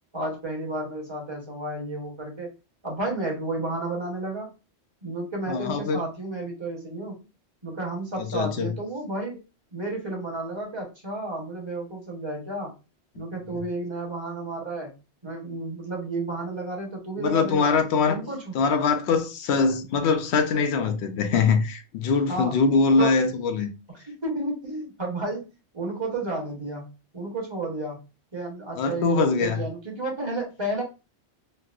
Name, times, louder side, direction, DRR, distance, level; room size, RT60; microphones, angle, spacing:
voice 1, 0.1-2.5 2.8-4.5 5.0-7.2 7.6-9.4 9.7-12.7 13.1-14.9 15.2-17.7 18.1-18.6 22.3-22.6 23.0-23.2 23.9-25.4 25.7-26.9 27.1-28.0 28.3-30.8, right 2 dB, 25° right, 1.0 m, -32 dB
voice 2, 5.5-6.0 8.2-8.7 17.2-18.2 18.5-23.7 28.8-29.6, left 4 dB, 75° left, 0.8 m, -23 dB
4.3 x 2.0 x 2.4 m
omnidirectional pair, 1.2 m